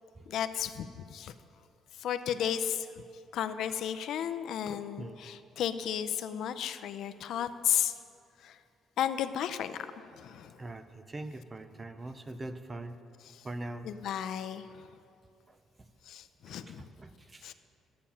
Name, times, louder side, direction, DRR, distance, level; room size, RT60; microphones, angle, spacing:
voice 1, 0.3-1.3 2.0-2.9 3.3-7.9 8.4-8.6 9.0-10.5 13.3-13.4 13.8-14.7 16.1-16.8 17.4-17.5, left 9 dB, 65° left, 10 dB, 0.5 m, -33 dB
voice 2, 10.6-13.0 13.4-13.9 15.5-15.6 16.5-17.5, right 2 dB, 20° right, 10 dB, 0.5 m, -42 dB
12.0 x 8.6 x 5.6 m, 2.5 s
cardioid pair, 150°, 0 cm